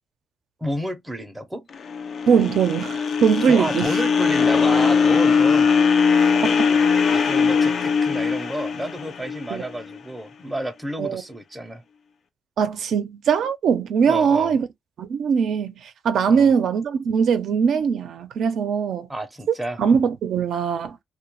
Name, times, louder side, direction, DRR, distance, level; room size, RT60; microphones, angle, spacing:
voice 1, 0.6-1.7 3.5-5.8 7.1-11.8 14.0-14.5 16.3-16.5 19.1-19.8, right 1 dB, 10° right, 0.6 m, -30 dB
sound 1, 1.7-10.0, left 5 dB, 50° left, 0.4 m, -20 dB
voice 2, 2.3-4.0 6.4-6.5 9.5-9.6 11.0-11.2 12.6-14.7 15.0-19.1 19.8-21.0, right 6 dB, 65° right, 0.5 m, -21 dB
2.2 x 2.1 x 3.0 m
cardioid pair, 115°, 0 cm